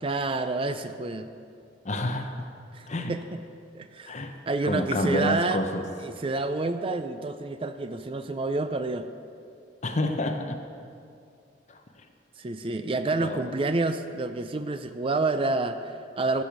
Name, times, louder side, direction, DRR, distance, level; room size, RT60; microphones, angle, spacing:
voice 1, 0.0-1.3 2.7-3.4 3.7-5.6 6.0-9.1 12.4-16.4, right 3 dB, 30° right, 9 dB, 0.4 m, -29 dB
voice 2, 1.8-2.5 2.9-3.1 4.1-4.4 4.6-5.8 9.8-10.6 11.7-11.8 13.2-13.4, left 1 dB, 40° left, 5 dB, 0.9 m, -28 dB
15.0 x 7.0 x 6.0 m, 2.4 s
head